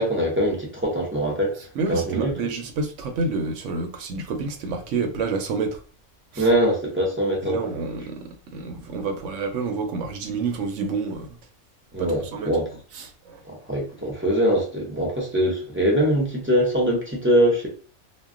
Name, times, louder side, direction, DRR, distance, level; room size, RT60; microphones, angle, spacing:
voice 1, 0.0-1.6 1.9-2.3 6.4-7.6 11.9-12.7 13.4-17.7, equal, 15° right, 0.4 m, -22 dB
voice 2, 1.6-5.8 6.3-6.5 7.4-11.4 12.0-12.6 12.9-13.4, right 4 dB, 65° right, 0.8 m, -29 dB
2.2 x 2.1 x 3.6 m
omnidirectional pair, 1.5 m